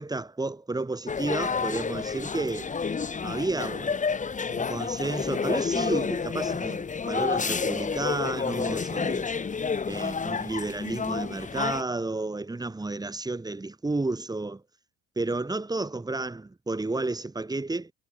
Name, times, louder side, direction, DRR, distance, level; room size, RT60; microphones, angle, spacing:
voice 1, 0.0-2.7 3.2-4.0 4.5-9.3 9.9-14.6 15.2-17.9, right 2 dB, 10° right, 7.7 m, -31 dB
sound 1, 1.1-11.8, left 5 dB, 25° left, 5.0 m, -30 dB
hypercardioid pair, 80°, 30 cm